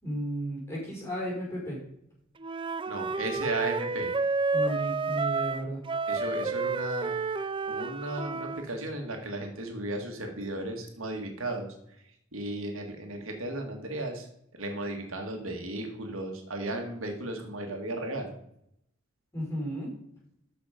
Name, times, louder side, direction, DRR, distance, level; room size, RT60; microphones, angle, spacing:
voice 1, 0.0-1.8 4.5-5.8 19.3-19.9, equal, 15° left, -4 dB, 5.0 m, -34 dB
Wind instrument woodwind instrument, 2.4-8.7, right 4 dB, 25° right, 0.5 m, -30 dB
voice 2, 2.9-4.1 6.1-7.1 7.7-12.0 12.3-14.3 14.6-18.3, right 1 dB, 80° right, 3 dB, 2.0 m, -35 dB
13.5 x 6.0 x 5.1 m, 0.74 s
head